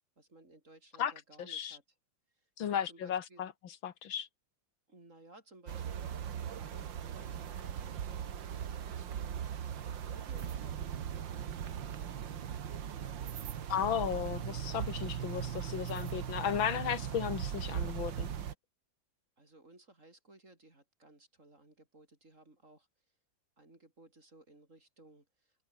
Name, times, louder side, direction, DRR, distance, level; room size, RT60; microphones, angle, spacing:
voice 1, 0.2-1.8 2.3-3.4 4.9-6.9 7.1-9.4 10.0-10.7 11.6-12.4 19.4-22.9 23.6-25.6, right 2 dB, 40° right, 5.2 m, -59 dB
voice 2, 1.4-1.8 2.6-4.3 13.7-18.3, left 9 dB, 85° left, 2.3 m, -35 dB
sound 1, 5.7-18.5, right 9 dB, 70° right, 2.1 m, -39 dB
omnidirectional pair, 2.1 m